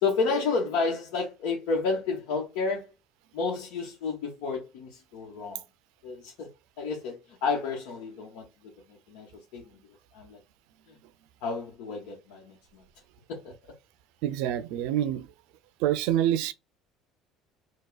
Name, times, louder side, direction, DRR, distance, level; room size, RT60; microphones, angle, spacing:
voice 1, 0.0-2.9 3.3-5.6 6.0-6.5 6.8-8.5 8.9-9.3 9.5-9.8 10.1-10.4 11.4-12.8 13.3-13.5, left 4 dB, 80° left, 1.0 m, -31 dB
voice 2, 14.2-15.3 15.8-16.5, right 12 dB, 75° right, 0.4 m, -26 dB
4.7 x 2.2 x 2.3 m
cardioid pair, 160°, 0 cm